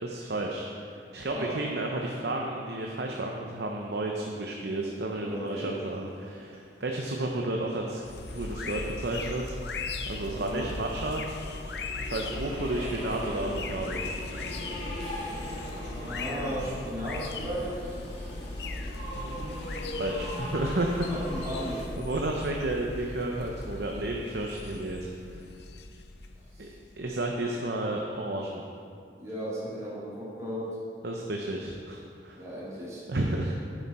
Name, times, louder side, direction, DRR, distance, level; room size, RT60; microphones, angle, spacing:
voice 1, 0.0-8.0 8.3-11.3 11.6-11.7 12.1-14.0 19.1-19.7 20.0-21.1 22.0-25.4 26.6-26.7 27.0-28.6 31.0-32.4 33.1-33.5, right 2 dB, 65° right, 0 dB, 0.7 m, -32 dB
voice 2, 5.2-5.8 10.3-10.7 15.9-18.6 21.1-22.0 26.5-26.7 29.2-30.7 32.3-33.0, equal, 20° right, -9 dB, 2.7 m, -36 dB
sound 1, 5.9-21.8, left 1 dB, 35° left, 2.2 m, -41 dB
sound 2, 8.0-27.4, left 3 dB, 70° left, 0.7 m, -38 dB
9.9 x 8.2 x 4.3 m, 2.4 s
head